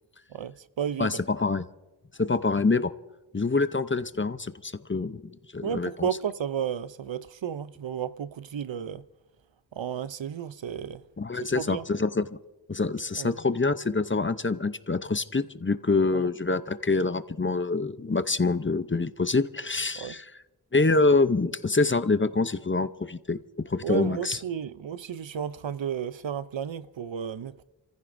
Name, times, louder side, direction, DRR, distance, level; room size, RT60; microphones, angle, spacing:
voice 1, 0.3-1.2 5.6-9.0 9.7-11.0 11.6-11.8 13.2-13.3 16.1-16.3 20.0-20.1 23.8-27.6, right 8 dB, 85° right, 0.6 m, -33 dB
voice 2, 1.0-1.7 2.2-2.9 3.3-6.1 11.2-12.4 12.7-20.3 20.7-23.4 23.7-24.4, left 3 dB, 25° left, 0.6 m, -26 dB
29.0 x 15.0 x 2.6 m
wide cardioid pair, 40°, 44 cm